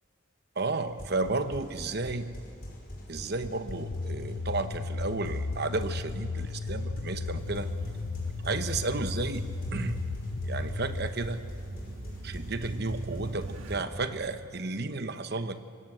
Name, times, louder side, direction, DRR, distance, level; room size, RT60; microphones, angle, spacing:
voice 1, 0.6-2.3 3.1-7.7 8.4-9.4 9.7-10.0 10.5-11.4 12.2-15.6, right 3 dB, 50° right, 10 dB, 1.0 m, -32 dB
sound 1, 0.9-14.1, equal, 45° left, 5.6 m, -44 dB
sound 2, 3.7-11.1, left 4 dB, 80° left, 0.7 m, -35 dB
sound 3, 7.4-13.8, right 2 dB, 70° right, 1.3 m, -40 dB
24.5 x 19.0 x 8.0 m, 2.2 s
head